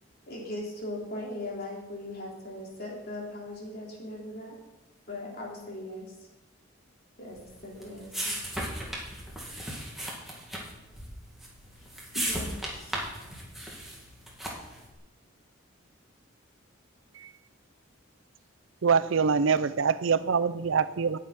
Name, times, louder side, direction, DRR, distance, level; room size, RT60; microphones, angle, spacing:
voice 1, 0.3-4.6 5.1-6.1 7.2-8.4, left 1 dB, 45° left, 3.5 m, -39 dB
sound 1, 7.4-14.8, right 1 dB, ahead, 2.2 m, -36 dB
voice 2, 11.7-13.8, left 2 dB, 70° left, 1.8 m, -46 dB
voice 3, 18.8-21.2, right 5 dB, 70° right, 0.5 m, -25 dB
10.5 x 6.7 x 9.2 m
head